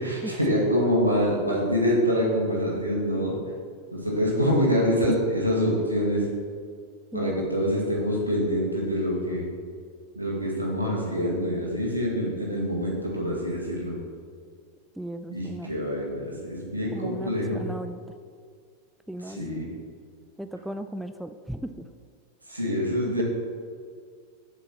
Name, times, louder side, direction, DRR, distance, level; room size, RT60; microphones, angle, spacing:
voice 1, 0.0-3.3 3.9-6.3 7.1-9.4 10.2-13.9 15.3-17.6 19.3-19.7 22.5-23.2, equal, 85° right, -3 dB, 1.9 m, -25 dB
voice 2, 7.1-7.5 15.0-15.7 16.9-18.0 19.1-19.4 20.4-21.9 23.1-23.2, right 1 dB, ahead, 9 dB, 0.3 m, -36 dB
7.5 x 5.2 x 5.8 m, 2.1 s
figure-of-eight pair, 90°, 0 cm